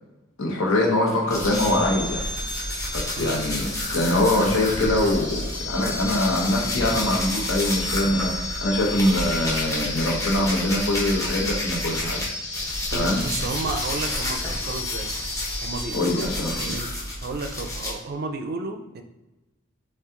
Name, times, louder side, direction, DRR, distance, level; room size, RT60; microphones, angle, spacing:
voice 1, 0.4-2.2 2.9-12.2 12.9-13.2 15.9-16.7, left 1 dB, 70° left, -1 dB, 1.0 m, -23 dB
sound 1, 1.3-12.2 12.5-17.9, left 1 dB, 15° left, 0.9 m, -30 dB
sound 2, 1.4-16.8, left 2 dB, 35° left, 0.7 m, -34 dB
voice 2, 12.9-15.1 15.6-16.9 17.2-19.0, right 3 dB, 50° right, 6 dB, 0.4 m, -32 dB
5.5 x 2.4 x 3.7 m, 1.0 s
head